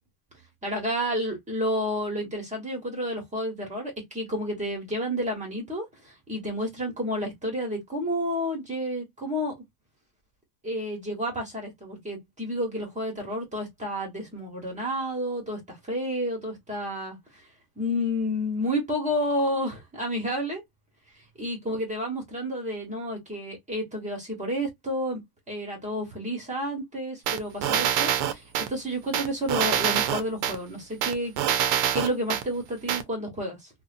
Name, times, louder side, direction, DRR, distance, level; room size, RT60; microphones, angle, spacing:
voice 1, 0.6-9.5 10.6-17.4 17.8-20.6 21.4-25.2 25.5-33.7, equal, 15° right, 1.2 m, -30 dB
sound 1, 27.3-28.7 29.1-30.6 31.0-32.4 32.9-33.0, right 10 dB, 50° right, 0.6 m, -25 dB
2.7 x 2.2 x 2.5 m
cardioid pair, 130°, 46 cm